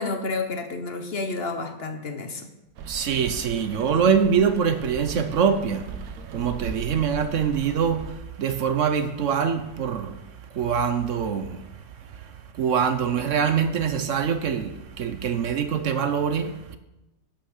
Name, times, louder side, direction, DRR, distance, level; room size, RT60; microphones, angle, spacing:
voice 1, 0.0-2.5, left 3 dB, 50° left, 1.0 m, -30 dB
Rain, 2.8-8.1, right 5 dB, 90° right, 1.3 m, -38 dB
voice 2, 2.9-10.2 10.5-11.6 12.1-16.8, right 7 dB, 65° right, 1.0 m, -24 dB
11.5 x 5.9 x 6.5 m
omnidirectional pair, 1.5 m